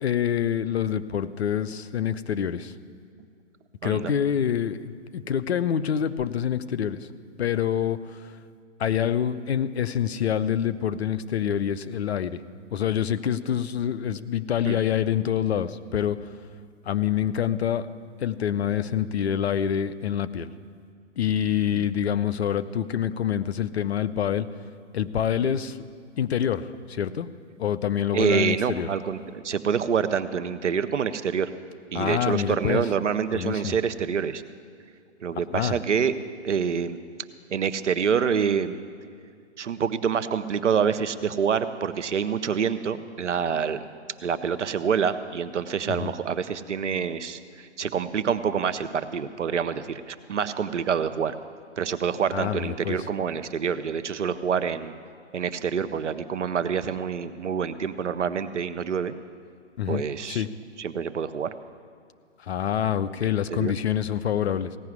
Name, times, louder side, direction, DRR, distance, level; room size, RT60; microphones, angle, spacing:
voice 1, 0.0-2.7 3.8-7.0 7.4-8.3 8.8-12.4 12.7-16.2 16.9-17.9 18.2-20.5 21.2-24.5 24.9-25.8 26.2-27.3 27.6-28.9 31.9-32.8 33.3-33.8 35.5-35.8 45.9-46.1 52.3-53.0 59.8-60.0 60.3-60.5 62.4-64.8, left 9 dB, 60° left, 13 dB, 0.7 m, -26 dB
voice 2, 3.8-4.1 14.6-14.8 21.7-21.9 25.4-25.5 28.1-31.5 31.9-34.4 35.2-36.1 36.4-37.0 37.5-38.8 39.6-43.8 44.2-51.4 51.8-54.9 55.3-59.1 59.9-60.4 60.8-61.5 63.2-63.7, right 7 dB, 75° right, 12 dB, 0.8 m, -27 dB
16.5 x 5.8 x 9.6 m, 2.2 s
hypercardioid pair, 145°, 36 cm